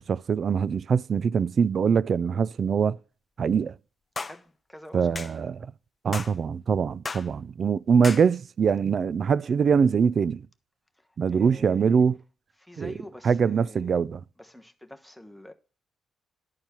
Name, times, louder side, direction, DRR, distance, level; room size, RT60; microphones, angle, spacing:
voice 1, 0.0-3.0 3.4-3.7 4.9-5.7 6.0-10.5 11.2-12.2 12.8-12.9 13.2-14.2, right 6 dB, 50° right, 0.3 m, -23 dB
sound 1, 4.2-4.4 5.1-5.3 6.1-6.3 7.0-7.3 8.0-8.3, left 4 dB, 25° left, 0.5 m, -34 dB
voice 2, 4.2-5.2 10.9-12.0 12.6-14.0 14.4-15.5, left 1 dB, ahead, 1.2 m, -46 dB
11.5 x 4.5 x 7.0 m
cardioid pair, 90°, 0 cm